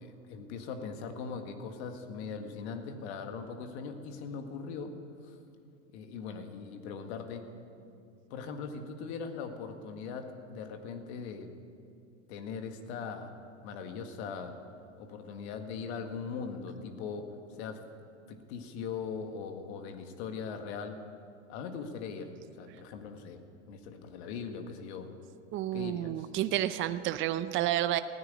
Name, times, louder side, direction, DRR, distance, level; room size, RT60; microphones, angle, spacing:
voice 1, 0.0-4.9 5.2-5.4 5.9-7.4 8.3-11.5 12.3-13.3 13.6-14.6 15.0-17.3 17.6-17.8 18.3-21.0 21.5-25.1 25.7-26.3, left 5 dB, 65° left, 6 dB, 1.8 m, -40 dB
voice 2, 25.5-28.0, right 13 dB, 35° right, 12 dB, 0.6 m, -30 dB
15.5 x 9.7 x 9.7 m, 2.5 s
hypercardioid pair, 115°, 36 cm